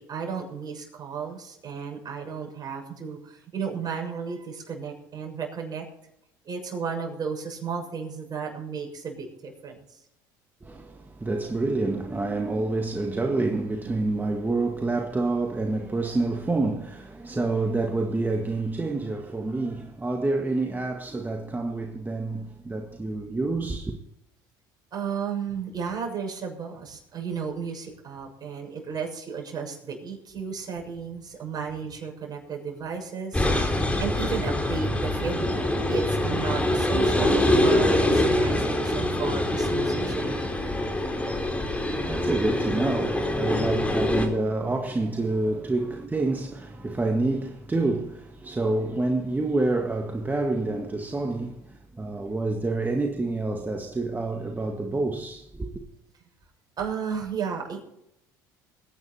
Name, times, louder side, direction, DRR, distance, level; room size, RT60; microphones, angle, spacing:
voice 1, 0.0-5.9 6.4-10.0 24.9-40.4 56.8-57.8, right 6 dB, 40° right, 6.8 m, -34 dB
voice 2, 10.6-24.0 41.1-55.8, right 2 dB, 20° right, 1.7 m, -28 dB
sound 1, 33.3-44.3, left 1 dB, 10° left, 4.1 m, -24 dB
21.5 x 9.8 x 4.4 m
hypercardioid pair, 70°, 10 cm